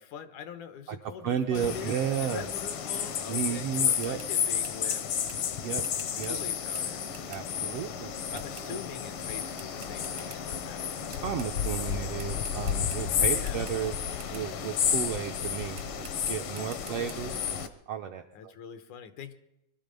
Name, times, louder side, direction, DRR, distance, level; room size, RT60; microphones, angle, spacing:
voice 1, 0.0-1.9 2.2-5.0 6.3-7.0 8.3-11.0 13.3-13.7 16.4-17.6 18.3-19.3, left 8 dB, 85° left, 9 dB, 2.5 m, -44 dB
voice 2, 1.2-2.4 3.3-4.2 5.6-5.8 6.2-6.4 7.3-8.4 8.7-8.8 11.2-13.9 14.3-18.5, right 9 dB, 80° right, 4 dB, 1.4 m, -33 dB
sound 1, 1.5-17.7, left 8 dB, 65° left, 1.4 m, -32 dB
sound 2, 3.4-3.6 4.0-7.7 8.3-9.0 9.6-10.8 11.1-11.8 12.2-14.5 15.2-15.4 15.7-17.1, right 4 dB, 50° right, 0.7 m, -50 dB
22.5 x 12.0 x 5.2 m, 0.87 s
omnidirectional pair, 3.5 m